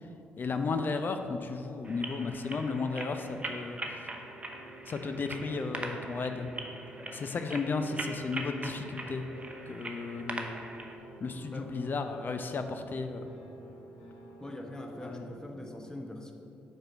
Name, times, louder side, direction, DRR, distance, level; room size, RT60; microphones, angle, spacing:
voice 1, 0.4-4.1 4.9-6.5 7.1-9.2 9.7-10.6 11.2-13.3 15.0-15.3, left 4 dB, 45° left, 7 dB, 0.5 m, -34 dB
sound 1, 1.8-11.0, right 2 dB, 25° right, 0.8 m, -42 dB
sound 2, 3.2-15.4, right 2 dB, 75° left, 1.2 m, -50 dB
voice 2, 14.4-16.3, left 1 dB, 15° left, 2 dB, 0.9 m, -42 dB
4.8 x 4.6 x 5.9 m, 2.8 s
hypercardioid pair, 45°, 5 cm